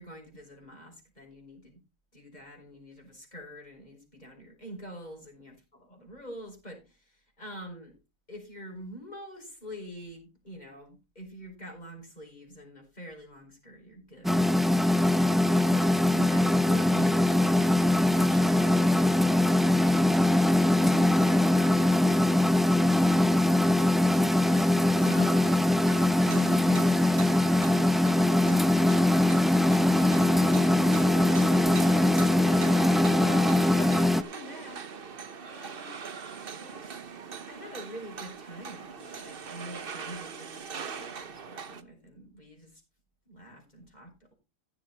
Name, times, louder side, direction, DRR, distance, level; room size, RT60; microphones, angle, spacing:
voice 1, 0.0-1.8 2.1-5.5 5.9-8.0 8.3-14.5 15.7-20.0 25.0-27.9 32.6-35.0 35.4-36.0 36.6-36.9 37.5-42.8 43.3-44.3, equal, 30° left, 2 dB, 6.1 m, -46 dB
sound 1, 14.2-34.2, left 1 dB, ahead, 0.5 m, -22 dB
sound 2, 24.4-41.8, right 6 dB, 45° right, 1.1 m, -41 dB
15.5 x 7.3 x 4.2 m, 0.27 s
omnidirectional pair, 1.4 m